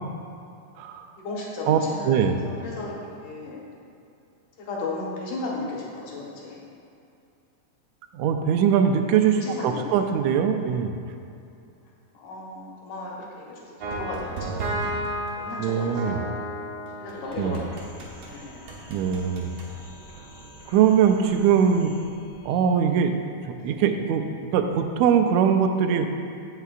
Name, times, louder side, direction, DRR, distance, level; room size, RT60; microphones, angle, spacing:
voice 1, 1.2-3.6 4.6-6.6 9.3-9.9 12.1-14.7 15.4-16.2 17.0-17.6 18.2-18.7 23.6-23.7, left 2 dB, 80° left, -4 dB, 2.9 m, -35 dB
voice 2, 2.0-2.4 8.1-10.9 15.6-16.2 17.4-17.6 18.9-19.5 20.7-22.0 22.4-23.1 23.6-26.1, right 7 dB, 80° right, 5 dB, 1.7 m, -21 dB
sound 1, 13.8-18.3 18.7-19.7, right 1 dB, 65° right, 2.1 m, -33 dB
sound 2, 17.2-22.5, equal, 25° left, 1.5 m, -47 dB
16.0 x 5.6 x 2.5 m, 2.6 s
omnidirectional pair, 3.6 m